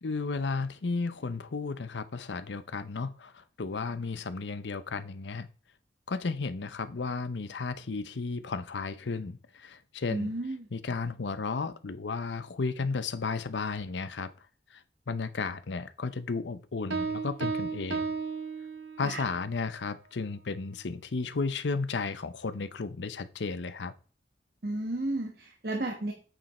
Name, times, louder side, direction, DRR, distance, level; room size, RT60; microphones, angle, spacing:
voice 1, 0.0-5.5 6.1-10.3 10.7-14.3 14.7-18.1 19.0-23.9, left 4 dB, 80° left, 0.6 m, -34 dB
voice 2, 10.1-10.7 19.0-19.2 24.6-26.1, right 1 dB, 55° right, 1.3 m, -33 dB
Piano, 16.9-19.3, right 4 dB, 90° right, 0.9 m, -34 dB
8.7 x 5.4 x 4.2 m
head